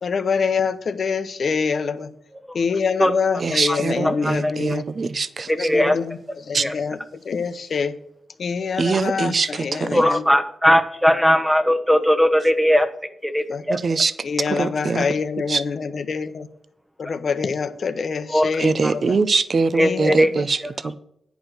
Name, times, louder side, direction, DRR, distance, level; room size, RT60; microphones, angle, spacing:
voice 1, 0.0-2.1 2.5-4.8 5.5-8.0 8.4-10.2 13.5-13.6 14.2-16.5 17.0-19.2 19.8-20.5, left 5 dB, 60° left, 11 dB, 0.8 m, -25 dB
voice 2, 3.4-5.7 6.5-6.6 8.8-9.5 9.8-10.0 13.7-14.1 14.5-15.0 15.5-15.6 18.6-20.6 20.8-20.9, right 4 dB, 45° right, 15 dB, 0.6 m, -22 dB
voice 3, 5.5-6.0 6.6-6.7 8.9-9.0 9.9-12.9 13.2-13.8 18.3-18.5 18.8-18.9 19.7-20.3 20.6-20.9, equal, 5° right, 8 dB, 0.9 m, -19 dB
10.5 x 4.9 x 7.7 m, 0.73 s
wide cardioid pair, 110°, 0 cm